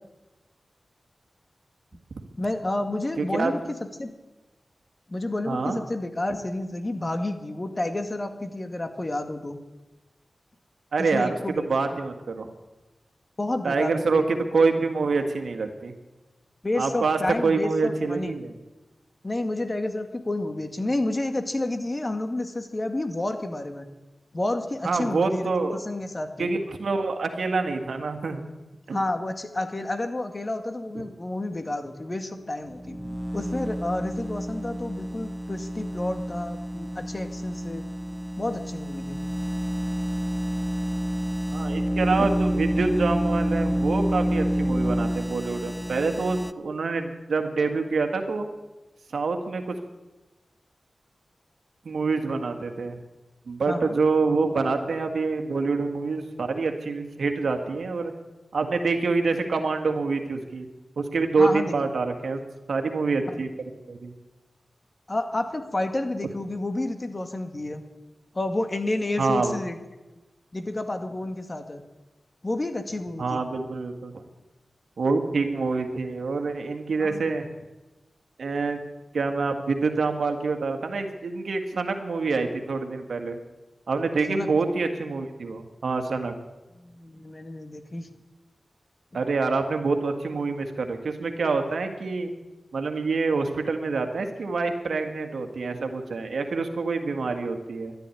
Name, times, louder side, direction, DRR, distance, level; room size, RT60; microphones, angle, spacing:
voice 1, 2.4-3.6 4.0-4.1 5.1-9.6 11.0-11.7 11.9-12.0 13.4-14.3 16.6-18.4 19.2-23.9 24.3-26.5 28.9-33.0 33.3-37.9 38.4-39.2 53.7-54.0 61.4-61.7 63.3-63.4 65.1-67.8 68.3-69.8 70.5-71.8 72.4-73.4 77.0-77.3 84.3-84.5 86.8-88.1 89.1-89.3, left 2 dB, 35° left, 6 dB, 2.1 m, -30 dB
voice 2, 3.2-3.5 5.5-5.8 10.9-12.5 13.6-15.9 16.8-18.5 24.8-25.8 26.4-28.4 28.9-29.0 33.0-33.2 41.5-48.5 49.1-49.7 51.8-53.0 53.5-58.1 58.5-60.7 61.0-62.4 62.7-64.1 69.2-69.5 73.2-74.2 75.0-77.5 78.4-78.8 79.1-83.4 83.9-86.3 89.1-92.3 92.7-97.9, right 4 dB, 80° right, 5 dB, 1.8 m, -26 dB
sound 1, 32.7-46.5, equal, 5° left, 0.6 m, -28 dB
12.5 x 11.5 x 9.9 m, 1.1 s
cardioid pair, 50°, 0 cm